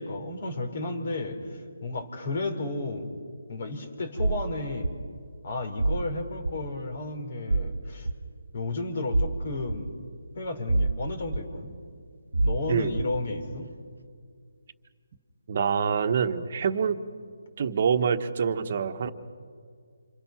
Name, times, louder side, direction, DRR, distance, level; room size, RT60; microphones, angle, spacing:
voice 1, 0.0-3.1 3.5-4.9 5.4-8.1 8.5-9.9 10.3-11.7 12.4-13.7, left 2 dB, 50° left, 7 dB, 4.0 m, -33 dB
sound 1, 4.2-4.4 4.8-4.9 5.8-6.0 6.4-6.6 7.5-7.7 8.0-8.1 9.1-9.3 9.7-9.8 10.7-11.0 11.3-11.4 12.3-12.6 13.0-13.1, right 2 dB, 90° right, 1.1 m, -25 dB
voice 2, 15.5-17.0 17.6-19.1, right 6 dB, 45° right, 9 dB, 1.3 m, -26 dB
28.0 x 26.5 x 5.9 m, 2.1 s
figure-of-eight pair, 155°, 0 cm